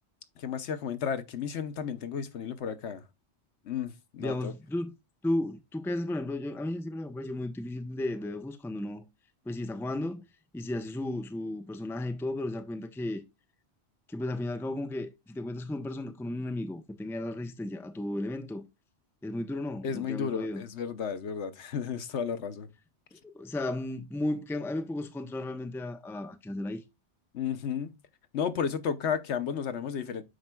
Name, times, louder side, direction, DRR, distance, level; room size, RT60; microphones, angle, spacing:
voice 1, 0.4-3.0 3.6-4.5 19.8-22.7 27.3-28.0 28.3-30.2, left 7 dB, 80° left, 1.1 m, -33 dB
voice 2, 4.2-4.9 5.2-9.0 9.5-10.3 10.5-13.2 14.1-18.6 19.2-20.6 23.1-26.8, left 1 dB, 5° left, 0.5 m, -34 dB
11.5 x 4.4 x 2.2 m
omnidirectional pair, 1.2 m